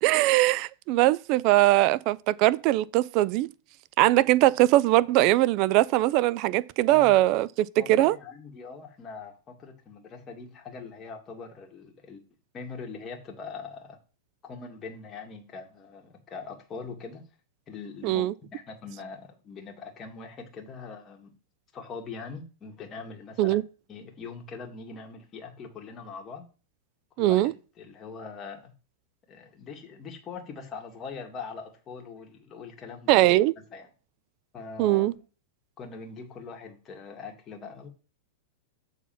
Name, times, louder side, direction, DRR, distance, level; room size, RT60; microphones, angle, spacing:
voice 1, 0.0-3.5 4.0-8.2 18.0-18.3 23.4-23.6 27.2-27.5 33.1-33.5 34.8-35.1, right 16 dB, 45° right, 0.4 m, -21 dB
voice 2, 7.8-12.2 12.5-14.0 14.4-17.2 17.7-21.3 21.7-23.6 23.9-26.5 27.2-28.7 29.3-33.3 33.7-33.9 34.5-35.2 35.8-37.9, left 5 dB, 25° left, 2.0 m, -42 dB
7.2 x 4.1 x 5.8 m
hypercardioid pair, 135°, 0 cm